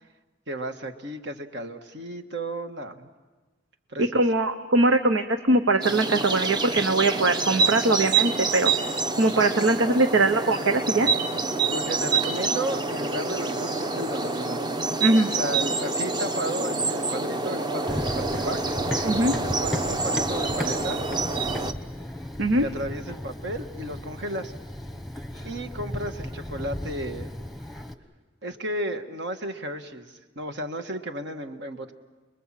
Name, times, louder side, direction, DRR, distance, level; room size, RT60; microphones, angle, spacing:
voice 1, 0.5-3.1 3.9-4.0 9.6-9.7 11.7-14.6 15.4-18.8 19.4-21.0 22.6-24.5 25.4-27.3 28.4-31.9, right 1 dB, 65° right, 6 dB, 1.6 m, -33 dB
voice 2, 4.0-8.7 9.2-11.1 15.0-15.3 19.0-19.3 22.4-22.7, right 2 dB, 85° right, 7 dB, 1.0 m, -21 dB
sound 1, 5.8-21.7, right 3 dB, 25° right, 0.8 m, -27 dB
Run, 17.9-27.9, left 1 dB, ahead, 1.1 m, -35 dB
29.0 x 21.5 x 7.6 m, 1.2 s
head